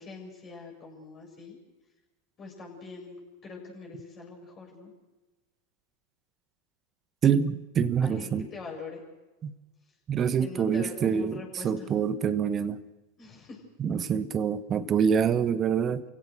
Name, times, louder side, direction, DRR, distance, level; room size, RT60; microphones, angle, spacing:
voice 1, 0.0-1.6 2.4-4.9 8.0-9.0 10.4-11.9 13.2-13.6, left 4 dB, 30° left, 7.7 m, -43 dB
voice 2, 7.2-8.5 9.4-9.5 10.1-12.8 13.8-16.0, right 7 dB, 30° right, 1.3 m, -26 dB
28.0 x 16.5 x 6.5 m
hypercardioid pair, 90°, 0 cm